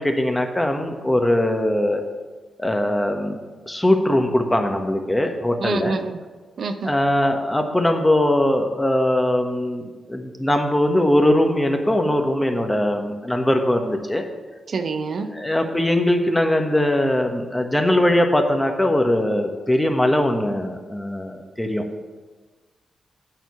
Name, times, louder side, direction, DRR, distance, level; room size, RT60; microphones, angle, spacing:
voice 1, 0.0-2.0 2.6-6.0 6.8-14.2 15.3-21.8, left 1 dB, 15° left, 4 dB, 1.3 m, -21 dB
voice 2, 5.6-6.2 6.6-6.9 14.7-15.3, right 4 dB, 65° right, 7 dB, 0.6 m, -26 dB
9.0 x 4.4 x 7.1 m, 1.3 s
supercardioid pair, 40°, 0 cm